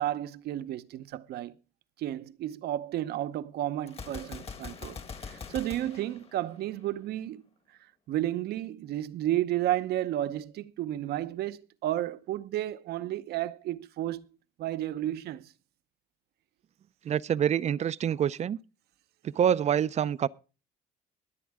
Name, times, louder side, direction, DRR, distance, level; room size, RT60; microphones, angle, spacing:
voice 1, 0.0-1.5 2.0-7.4 8.1-14.3 14.6-15.5, right 13 dB, 70° right, 0.8 m, -32 dB
Gunshot gunfire, 3.9-7.0, left 5 dB, 35° left, 1.3 m, -43 dB
voice 2, 17.0-18.6 19.2-20.3, right 9 dB, 40° right, 0.5 m, -26 dB
22.0 x 8.4 x 3.6 m
cardioid pair, 110°, 17 cm